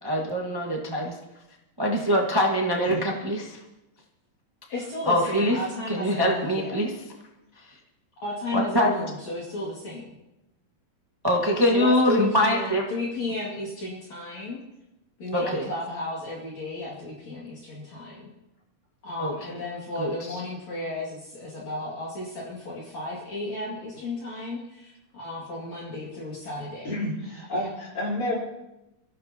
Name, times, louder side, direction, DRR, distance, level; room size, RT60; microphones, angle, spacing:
voice 1, 0.0-1.1 1.8-3.6 5.0-5.6 5.9-6.9 8.5-8.9 11.2-12.8 15.3-15.7 19.2-19.3 20.0-20.4, equal, 40° right, 0 dB, 0.3 m, -23 dB
voice 2, 4.7-6.8 8.2-10.2 11.7-14.6 15.2-18.3 19.0-26.9 27.6-27.7, left 1 dB, 55° left, -5 dB, 3.6 m, -34 dB
voice 3, 26.8-28.3, left 1 dB, 30° left, -4 dB, 4.8 m, -30 dB
24.5 x 14.5 x 2.9 m, 0.94 s
omnidirectional pair, 3.7 m